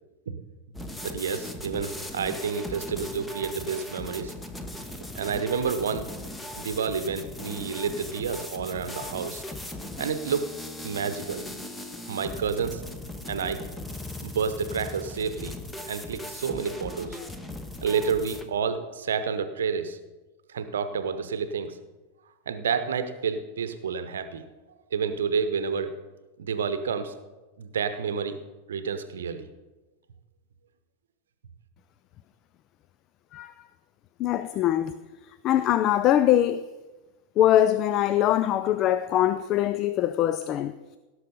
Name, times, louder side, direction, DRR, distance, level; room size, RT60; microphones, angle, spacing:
sound 1, 0.7-18.4, left 1 dB, 10° left, 1.0 m, -39 dB
voice 1, 1.0-4.3 5.0-6.1 6.6-9.4 10.0-10.5 10.8-11.4 12.1-12.8 13.3-13.6 14.2-15.6 15.9-17.2 17.8-20.0 20.5-21.8 22.5-24.4 24.9-25.9 26.4-27.1 27.6-28.4 28.7-29.5, right 6 dB, 65° right, 0.9 m, -29 dB
voice 2, 34.2-34.9 35.4-36.6 37.4-40.7, left 12 dB, 35° left, 0.4 m, -22 dB
17.0 x 6.3 x 5.3 m
figure-of-eight pair, 90°, 0 cm